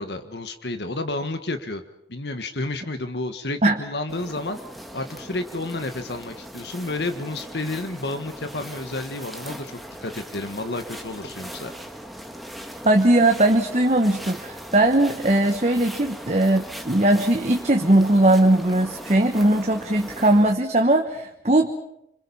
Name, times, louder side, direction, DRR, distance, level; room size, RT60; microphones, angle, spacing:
voice 1, 0.0-1.8 2.1-4.6 4.9-11.7, left 2 dB, 75° left, 8 dB, 1.5 m, -31 dB
sound 1, 4.1-20.5, equal, ahead, 1.7 m, -39 dB
voice 2, 12.8-21.7, right 1 dB, 40° right, 5 dB, 1.2 m, -19 dB
26.5 x 25.5 x 5.6 m, 0.80 s
head